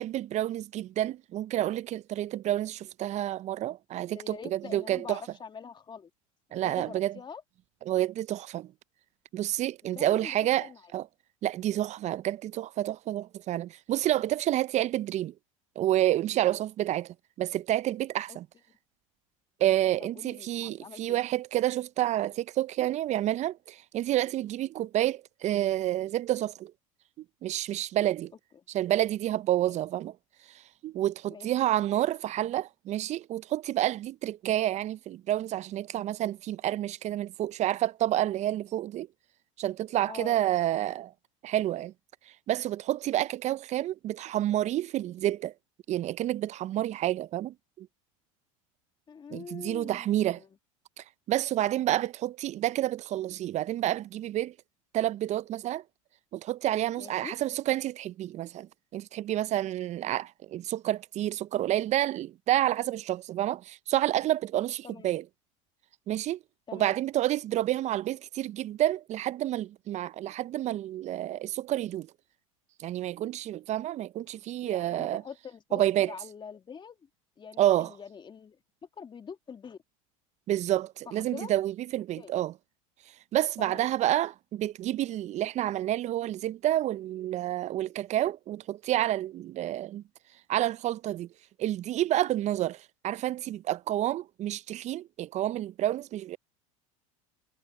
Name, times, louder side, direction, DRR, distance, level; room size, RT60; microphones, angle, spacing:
voice 1, 0.0-5.2 6.5-7.1 7.8-8.7 9.3-11.1 11.4-15.3 15.8-18.5 19.6-26.7 27.2-28.3 28.7-30.1 30.8-39.1 39.6-41.1 41.4-41.9 42.5-45.5 45.9-47.9 49.3-50.4 51.0-54.5 54.9-55.8 56.3-65.2 66.1-66.4 66.7-72.1 72.8-75.2 75.7-76.1 77.6-77.9 80.5-82.5 83.3-90.0 90.5-91.3 91.6-96.4, right 13 dB, 40° right, 0.6 m, -29 dB
voice 2, 4.1-6.1 6.5-7.4 9.8-10.9 18.3-18.4 20.0-21.2 29.6-29.8 31.3-31.5 40.1-40.4 49.1-50.5 57.0-57.3 64.8-65.1 66.7-67.0 74.6-77.0 77.4-78.6 79.0-79.8 81.1-81.5 82.2-82.3 83.6-83.9, left 6 dB, 25° left, 2.5 m, -44 dB
hypercardioid pair, 85°, 17 cm